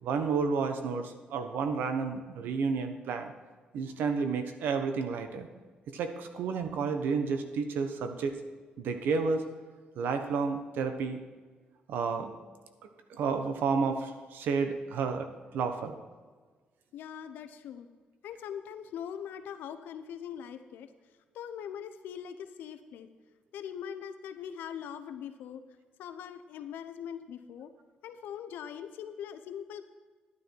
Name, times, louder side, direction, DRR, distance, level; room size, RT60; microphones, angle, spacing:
voice 1, 0.0-3.3 3.7-5.5 5.9-8.4 8.8-9.4 10.0-11.2 11.9-12.3 13.1-15.3 15.5-16.0, right 5 dB, 85° right, 7 dB, 1.1 m, -31 dB
voice 2, 16.9-17.9 18.2-20.9 21.3-23.1 23.5-25.6 26.0-27.7 28.0-29.8, left 8 dB, 90° left, 10 dB, 0.8 m, -41 dB
11.0 x 9.8 x 4.6 m, 1.4 s
cardioid pair, 85°, 3 cm